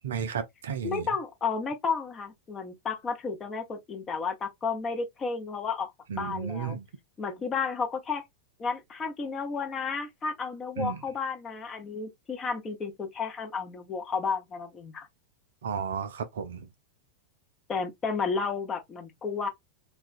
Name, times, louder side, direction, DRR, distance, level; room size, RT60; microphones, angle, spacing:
voice 1, 0.0-1.1 6.1-6.9 10.8-11.0 15.6-16.7, right 7 dB, 60° right, 0.4 m, -33 dB
voice 2, 0.8-5.9 6.1-6.8 7.2-8.2 8.6-15.1 17.7-19.5, left 5 dB, 25° left, 0.8 m, -32 dB
2.3 x 2.3 x 2.5 m
figure-of-eight pair, 90°, 0 cm